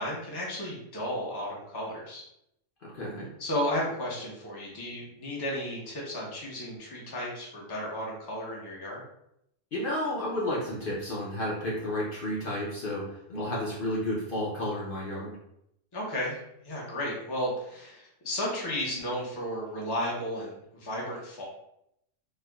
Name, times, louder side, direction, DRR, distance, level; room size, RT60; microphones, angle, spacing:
voice 1, 0.0-2.2 3.4-9.0 15.9-21.4, left 1 dB, 25° left, -4 dB, 0.7 m, -33 dB
voice 2, 2.8-3.3 9.7-15.3, left 1 dB, 50° left, -6 dB, 0.8 m, -32 dB
4.4 x 2.2 x 2.3 m, 0.77 s
omnidirectional pair, 1.3 m